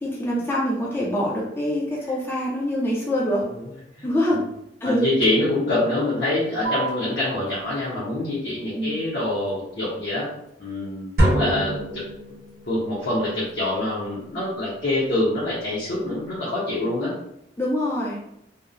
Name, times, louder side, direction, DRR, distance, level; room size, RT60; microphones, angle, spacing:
voice 1, 0.0-3.4 4.0-4.5 4.8-5.1 8.7-8.9 17.6-18.2, equal, 15° left, -4 dB, 0.4 m, -24 dB
voice 2, 4.8-10.3 10.6-11.8 12.7-17.1, left 1 dB, 65° left, -9 dB, 0.7 m, -25 dB
sound 1, 6.6-13.6, right 4 dB, 85° left, 1.3 m, -40 dB
sound 2, 11.2-12.9, right 1 dB, 55° right, 0.8 m, -23 dB
2.9 x 2.0 x 2.4 m, 0.79 s
head